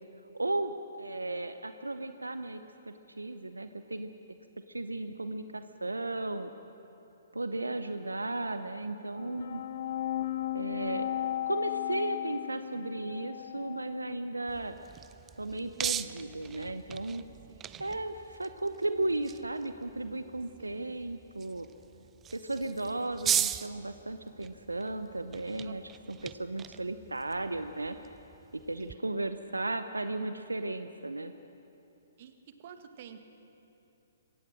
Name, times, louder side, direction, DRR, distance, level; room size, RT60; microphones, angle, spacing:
voice 1, 0.3-4.1 4.7-6.5 7.3-9.6 10.5-11.1 11.5-14.8 15.4-17.2 17.8-21.7 22.3-25.8 26.1-28.0 28.7-31.3, right 2 dB, 85° right, 10 dB, 0.7 m, -35 dB
sound 1, 9.2-14.2, left 12 dB, 55° left, 0.5 m, -35 dB
sound 2, 14.5-29.0, right 10 dB, 20° right, 0.5 m, -39 dB
voice 2, 17.5-17.9 20.6-20.9 25.6-25.7 28.8-29.1 32.2-33.3, right 8 dB, 45° right, 8 dB, 1.6 m, -51 dB
23.0 x 17.5 x 6.4 m, 2.9 s
figure-of-eight pair, 125°, 0 cm